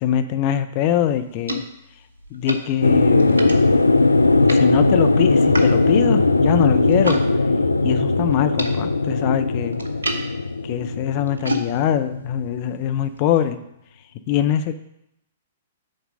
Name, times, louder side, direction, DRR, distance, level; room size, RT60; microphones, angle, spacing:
voice 1, 0.0-1.6 2.3-3.5 4.6-7.2 7.8-9.8 10.6-13.6 14.3-14.8, left 10 dB, 40° left, 9 dB, 0.6 m, -23 dB
sound 1, 0.8-7.3 7.5-13.4, equal, 75° right, 0.9 m, -33 dB
sound 2, 2.8-12.5, left 3 dB, 80° left, 0.3 m, -18 dB
6.6 x 4.6 x 6.2 m, 0.81 s
figure-of-eight pair, 110°, 0 cm